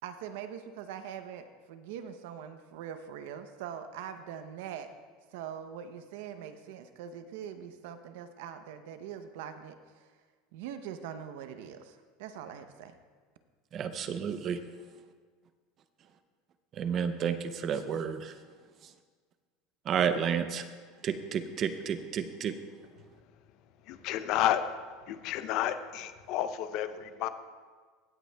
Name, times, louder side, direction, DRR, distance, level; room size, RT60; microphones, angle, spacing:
voice 1, 0.0-4.9 5.3-10.1 10.5-12.9, right 8 dB, 75° right, 9 dB, 0.7 m, -43 dB
voice 2, 13.7-14.6 16.7-18.3 19.9-20.7 21.0-22.6, right 7 dB, 30° right, 10 dB, 0.5 m, -31 dB
voice 3, 24.0-24.6 25.1-27.3, left 12 dB, 50° left, 11 dB, 0.5 m, -30 dB
16.0 x 8.3 x 2.3 m, 1.5 s
supercardioid pair, 155°, 0 cm